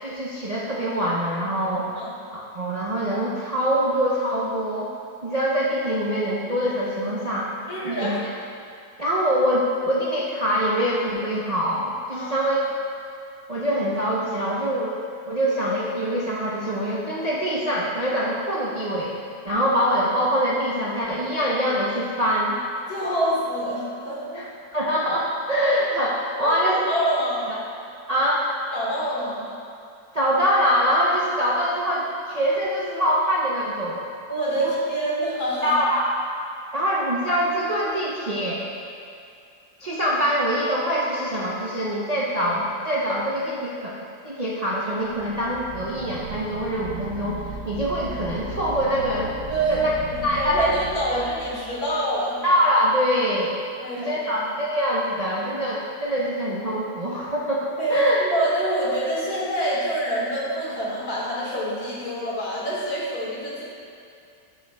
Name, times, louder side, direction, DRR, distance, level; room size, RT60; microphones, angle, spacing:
voice 1, 0.0-1.9 2.3-4.9 5.2-7.5 7.8-8.1 9.0-12.6 13.5-15.0 15.2-19.1 19.4-22.6 24.3-24.4 24.7-26.8 28.1-28.5 30.1-34.1 34.6-34.7 35.6-36.1 36.7-38.6 39.8-43.9 44.2-49.3 49.7-49.9 50.2-50.8 51.1-51.3 52.4-53.6 54.0-58.2, equal, 40° right, -7 dB, 0.5 m, -24 dB
voice 2, 7.7-8.2 12.1-12.5 22.9-24.4 26.4-27.6 28.7-29.5 34.3-35.8 49.5-52.4 53.8-54.4 57.8-63.6, right 1 dB, 70° left, -6 dB, 2.2 m, -26 dB
sound 1, 44.9-52.0, right 2 dB, 70° right, 1.2 m, -36 dB
12.0 x 6.3 x 2.2 m, 2.4 s
omnidirectional pair, 1.7 m